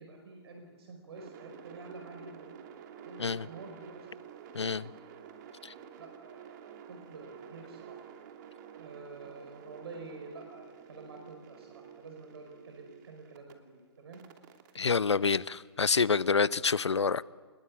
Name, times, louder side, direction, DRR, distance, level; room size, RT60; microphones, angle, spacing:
voice 1, 0.0-2.5 3.0-4.1 4.4-4.7 5.5-8.0 8.7-14.2, right 3 dB, 65° right, 5.0 m, -49 dB
sound 1, 1.1-13.5 14.1-16.3, right 8 dB, 45° right, 2.8 m, -51 dB
voice 2, 4.5-4.9 5.6-5.7 14.7-17.2, left 5 dB, 90° left, 0.8 m, -27 dB
26.5 x 21.0 x 8.6 m
hypercardioid pair, 125°, 14 cm